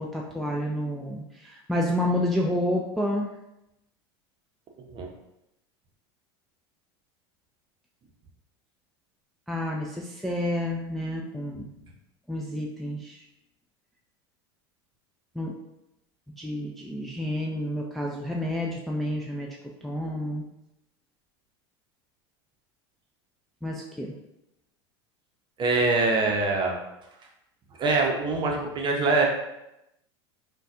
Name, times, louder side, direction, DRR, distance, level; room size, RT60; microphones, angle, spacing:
voice 1, 0.0-3.3 9.5-11.7 12.3-13.2 15.4-15.5 16.4-19.6 19.8-20.4 23.6-24.1, left 1 dB, ahead, -2 dB, 0.3 m, -29 dB
voice 2, 4.8-5.1 25.6-26.8 27.8-29.3, right 3 dB, 35° right, 1 dB, 0.7 m, -24 dB
3.9 x 2.2 x 2.5 m, 0.87 s
hypercardioid pair, 95°, 14 cm